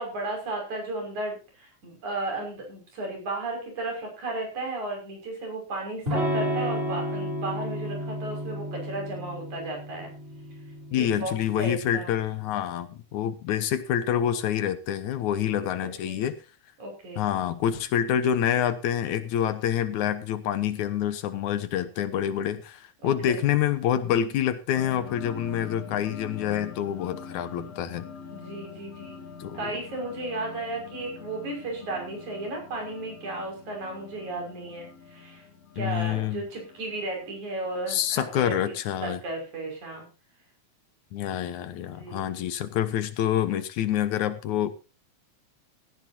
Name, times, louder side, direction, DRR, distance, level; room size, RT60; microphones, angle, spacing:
voice 1, 0.0-10.1 11.0-12.1 15.8-16.2 16.8-17.2 23.0-23.4 28.3-29.2 29.5-35.5 35.8-38.8 39.0-40.1 41.9-42.3, right 2 dB, 80° right, 1 dB, 7.5 m, -34 dB
Electric guitar / Strum, 6.1-11.8, equal, 20° right, 4.5 m, -32 dB
voice 2, 10.9-16.4 17.2-28.1 29.4-29.7 35.8-36.5 37.9-39.2 41.1-44.7, left 10 dB, 80° left, 12 dB, 2.5 m, -27 dB
sound 1, 24.7-38.7, left 6 dB, 60° left, 3.5 m, -45 dB
17.0 x 14.0 x 2.8 m, 0.31 s
omnidirectional pair, 3.3 m